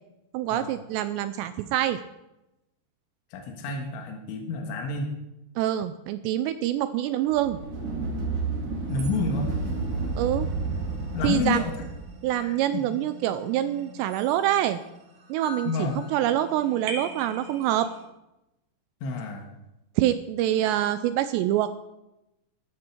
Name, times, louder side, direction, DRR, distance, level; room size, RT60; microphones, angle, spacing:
voice 1, 0.3-2.0 5.6-7.6 10.2-10.5 11.2-11.6 12.2-14.8 15.3-17.9 20.0-21.7, right 12 dB, 85° right, 12 dB, 2.5 m, -25 dB
voice 2, 3.3-5.1 8.9-9.6 11.1-11.8 12.4-12.8 15.7-16.0 19.0-19.5, left 4 dB, 80° left, 2 dB, 3.9 m, -29 dB
sound 1, 7.3-12.1, right 3 dB, 40° right, 2.4 m, -31 dB
sound 2, 8.9-18.0, right 1 dB, 65° right, 4.2 m, -43 dB
13.5 x 13.5 x 4.5 m, 0.93 s
omnidirectional pair, 5.4 m